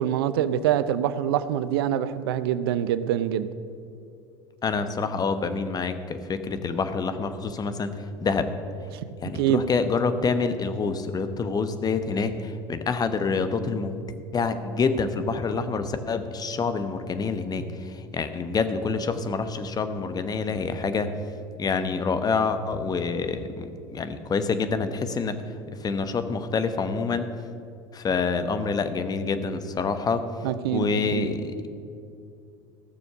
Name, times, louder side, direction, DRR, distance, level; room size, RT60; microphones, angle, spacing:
voice 1, 0.0-3.5 9.3-9.6 30.4-31.3, right 10 dB, 75° right, 14 dB, 0.6 m, -25 dB
voice 2, 4.6-8.5 9.2-14.0 14.3-21.1 21.6-25.4 25.7-27.3 27.9-30.3 30.7-31.7, left 4 dB, 30° left, 10 dB, 1.0 m, -27 dB
15.0 x 6.9 x 6.7 m, 2.5 s
hypercardioid pair, 80°, 13 cm